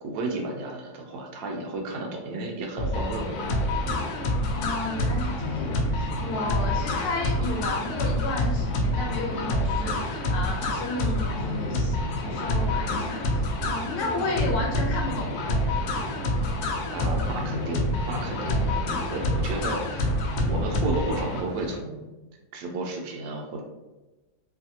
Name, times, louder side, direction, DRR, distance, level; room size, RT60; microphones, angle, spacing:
voice 1, 0.0-3.3 14.5-14.6 16.4-16.5 16.9-20.1 20.5-22.1 22.5-23.6, right 2 dB, 80° right, 1 dB, 1.3 m, -33 dB
sound 1, 2.8-21.4, left 1 dB, 90° left, 0.7 m, -27 dB
sound 2, 2.9-21.8, equal, 30° right, 0.8 m, -38 dB
voice 2, 4.5-15.6, left 2 dB, 70° left, 0 dB, 1.0 m, -33 dB
3.2 x 2.5 x 2.6 m, 1.1 s
omnidirectional pair, 2.1 m